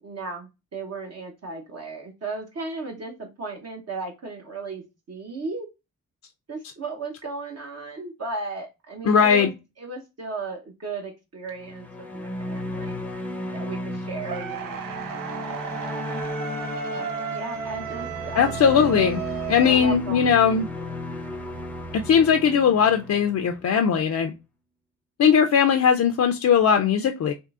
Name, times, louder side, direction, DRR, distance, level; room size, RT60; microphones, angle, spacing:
voice 1, 0.0-5.7 6.5-9.5 9.8-13.0 13.5-14.8 16.9-18.6 19.6-20.9, right 3 dB, 50° right, 0.8 m, -36 dB
voice 2, 9.1-9.5 18.4-19.2 19.5-20.7 22.1-24.3 25.2-27.3, left 7 dB, 55° left, 0.4 m, -19 dB
sound 1, 11.5-24.0, left 1 dB, 5° left, 0.6 m, -34 dB
sound 2, 14.2-20.3, right 7 dB, 80° right, 0.5 m, -34 dB
3.6 x 2.6 x 2.4 m
cardioid pair, 70°, 33 cm